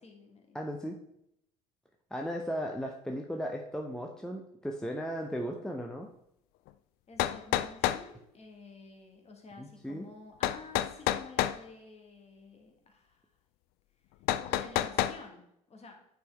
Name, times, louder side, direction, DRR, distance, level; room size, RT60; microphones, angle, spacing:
voice 1, 0.0-0.6 7.1-13.3 14.4-16.0, left 3 dB, 30° left, 3 dB, 1.6 m, -51 dB
voice 2, 0.5-1.0 2.1-6.1 9.6-10.0, equal, 5° left, 2 dB, 0.8 m, -36 dB
sound 1, 6.7-6.8 7.2-8.0 10.4-11.6 14.3-15.2, left 13 dB, 55° left, 0.4 m, -28 dB
9.1 x 4.6 x 3.3 m, 0.76 s
figure-of-eight pair, 60°, 20 cm